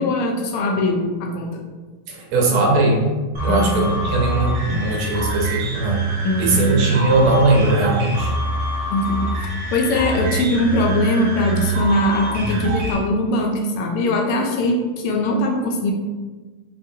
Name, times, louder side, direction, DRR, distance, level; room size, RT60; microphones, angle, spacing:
voice 1, 0.0-1.6 3.5-3.8 6.2-6.8 8.9-9.3 9.7-15.9, left 1 dB, 85° left, 2 dB, 1.6 m, -21 dB
voice 2, 2.1-3.0 3.4-6.0 6.4-8.3, right 2 dB, 80° right, -1 dB, 1.6 m, -19 dB
sound 1, 3.3-12.9, right 2 dB, 60° right, 1.1 m, -25 dB
4.9 x 2.6 x 2.7 m, 1.3 s
omnidirectional pair, 2.4 m